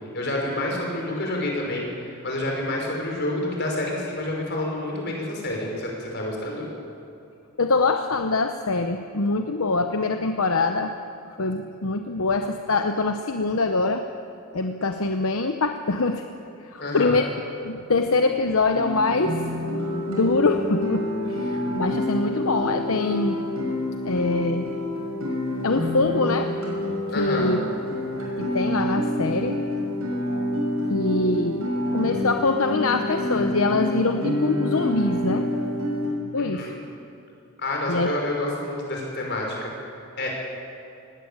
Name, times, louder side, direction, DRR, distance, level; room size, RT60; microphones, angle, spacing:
voice 1, 0.1-6.7 16.8-17.2 27.1-27.5 36.4-36.8 37.6-39.7 40.2-40.3, left 1 dB, 50° left, -1 dB, 5.5 m, -28 dB
voice 2, 7.6-10.9 11.4-14.0 14.5-16.2 16.6-17.2 17.6-19.5 20.1-23.4 24.0-24.7 25.6-26.5 27.2-27.6 28.4-29.6 30.3-30.4 30.9-35.4 36.3-36.7 37.9-38.1, left 3 dB, 75° left, 6 dB, 0.9 m, -24 dB
Guitar, 18.7-36.1, left 1 dB, 70° right, 5.6 m, -27 dB
19.5 x 16.5 x 8.8 m, 2.7 s
head